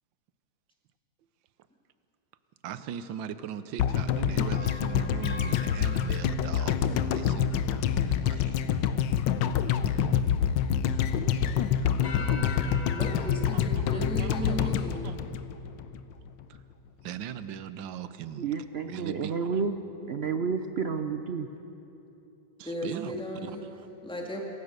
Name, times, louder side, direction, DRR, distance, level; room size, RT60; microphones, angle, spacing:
voice 1, 2.6-8.6 9.6-9.7 13.5-14.7 15.0-15.2 16.5-16.6 17.0-19.6 22.6-23.2 23.4-23.9, right 9 dB, 90° right, 13 dB, 1.5 m, -40 dB
sound 1, 3.8-16.0 16.3-16.4, left 8 dB, 80° left, 1.4 m, -27 dB
sound 2, 4.5-7.4 12.0-13.3, left 4 dB, 50° left, 2.0 m, -42 dB
voice 2, 12.9-15.1 22.6-23.6 24.0-24.4, equal, 5° left, 0 dB, 2.2 m, -35 dB
voice 3, 18.4-19.8 20.1-21.5, right 5 dB, 70° right, 8 dB, 0.6 m, -30 dB
26.5 x 15.0 x 6.6 m, 3.0 s
omnidirectional pair, 2.0 m